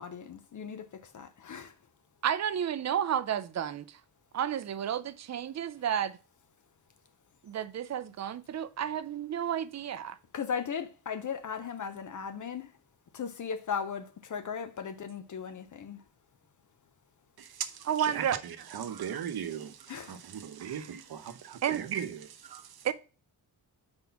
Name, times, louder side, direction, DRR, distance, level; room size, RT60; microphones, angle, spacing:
voice 1, 0.0-1.7 10.3-12.7 13.1-16.0 19.9-20.2, left 7 dB, 50° left, 0.7 m, -37 dB
voice 2, 2.2-4.0 4.3-6.2 7.4-10.2 17.9-18.4 20.6-20.9 21.6-21.8 22.8-22.9, right 9 dB, 45° right, 0.5 m, -31 dB
voice 3, 17.4-22.9, right 8 dB, 70° right, 0.8 m, -38 dB
4.8 x 4.0 x 5.7 m
wide cardioid pair, 155°, 39 cm